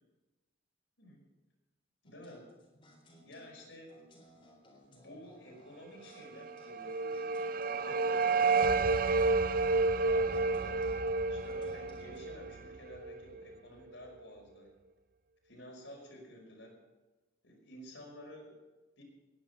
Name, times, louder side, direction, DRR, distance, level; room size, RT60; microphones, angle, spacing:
voice 1, 2.0-2.5 3.2-3.9 4.9-8.7 10.0-10.9 11.3-14.7 15.4-16.8 17.4-18.6 19.0-19.1, left 1 dB, 65° left, 0 dB, 5.3 m, -51 dB
sound 1, 2.0-12.5, left 1 dB, 25° left, 3.9 m, -60 dB
sound 2, 6.4-13.4, right 3 dB, 45° right, 0.5 m, -30 dB
19.0 x 10.5 x 5.6 m, 1.2 s
head